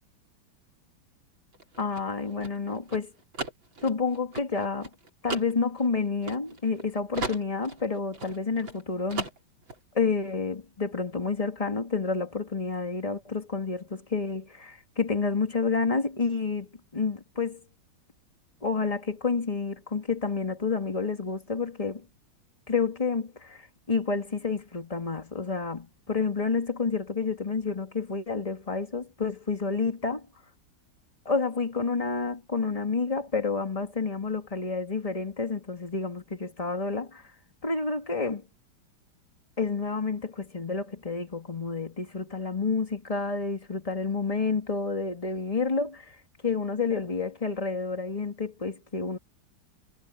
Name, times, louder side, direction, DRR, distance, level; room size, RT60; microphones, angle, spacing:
sound 1, 1.5-6.8 7.1-8.8 9.1-9.8, right 3 dB, 65° right, 5.3 m, -37 dB
voice 1, 1.8-3.1 3.8-4.9 5.2-9.3 9.9-17.6 18.6-22.1 22.7-30.3 31.3-37.3 37.6-38.4 39.6-46.2 46.4-49.2, left 4 dB, 15° left, 2.2 m, -29 dB
omnidirectional pair, 2.2 m